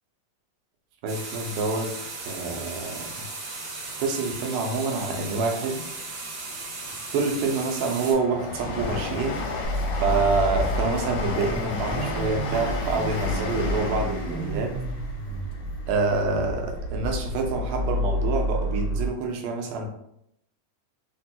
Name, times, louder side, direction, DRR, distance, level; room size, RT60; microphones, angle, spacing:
voice 1, 1.0-1.9 2.3-3.3 4.0-5.8 7.1-9.4 10.0-14.7 15.9-19.9, right 3 dB, 90° right, 2 dB, 2.2 m, -27 dB
sound 1, 1.1-8.1, right 3 dB, 65° right, 2.0 m, -36 dB
Train, 7.0-17.2 17.6-18.5 18.7-18.8, left 3 dB, 80° left, 1.4 m, -33 dB
Car / Idling / Accelerating revving vroom, 9.6-19.1, equal, 50° right, 1.3 m, -30 dB
4.9 x 2.2 x 2.7 m, 0.76 s
omnidirectional pair, 3.6 m